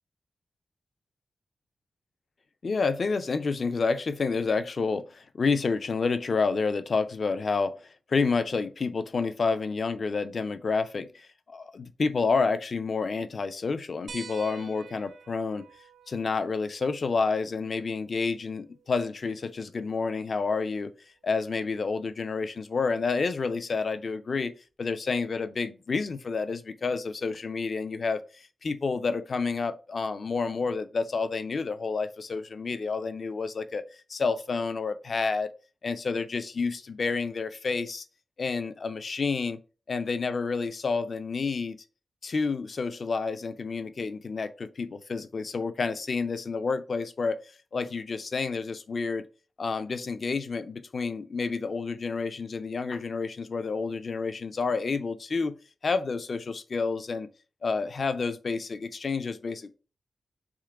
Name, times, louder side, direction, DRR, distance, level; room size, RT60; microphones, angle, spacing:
voice 1, 2.6-7.8 8.1-15.7 16.1-20.9 21.2-28.2 28.6-33.8 34.1-35.5 35.8-38.0 38.4-39.6 39.9-41.8 42.2-47.4 47.7-49.3 49.6-55.5 55.8-57.3 57.6-59.7, left 4 dB, 45° left, 0.4 m, -29 dB
sound 1, 14.1-19.1 20.7-20.8 22.4-22.5, right 5 dB, 55° right, 0.5 m, -49 dB
3.6 x 2.9 x 4.5 m
wide cardioid pair, 160°, 0 cm